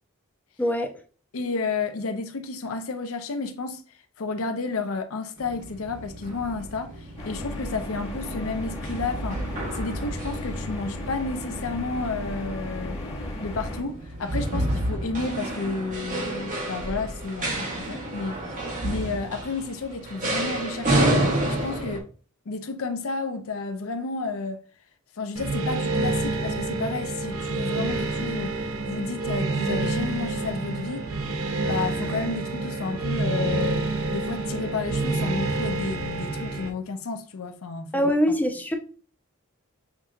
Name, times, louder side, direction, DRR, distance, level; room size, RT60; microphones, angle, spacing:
voice 1, 0.6-0.9 37.9-38.8, equal, 10° left, 0.5 m, -23 dB
voice 2, 1.3-3.8 4.2-9.4 9.7-13.0 13.4-21.4 21.6-22.1 22.5-24.6 25.2-31.1 31.6-38.1, left 4 dB, 80° left, 0.6 m, -31 dB
sound 1, 5.4-22.0, right 1 dB, 40° right, 1.4 m, -30 dB
sound 2, 7.2-13.8, left 1 dB, 30° left, 1.2 m, -35 dB
sound 3, 25.4-36.7, right 3 dB, 75° right, 0.8 m, -28 dB
5.9 x 2.8 x 2.4 m
head